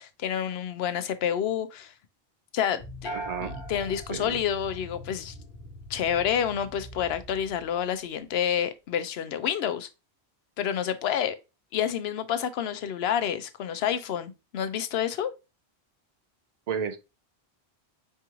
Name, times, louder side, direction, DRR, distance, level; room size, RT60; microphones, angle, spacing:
voice 1, 0.0-1.9 2.5-5.3 5.9-9.9 10.6-11.4 11.7-15.3, left 9 dB, 75° left, 0.8 m, -29 dB
sound 1, 2.8-7.9, left 2 dB, 60° left, 1.2 m, -45 dB
sound 2, 3.0-5.3, right 1 dB, 20° left, 1.3 m, -40 dB
voice 2, 3.1-3.6 4.1-4.4 16.7-17.0, right 6 dB, 55° right, 0.4 m, -32 dB
4.6 x 3.0 x 3.5 m
omnidirectional pair, 1.1 m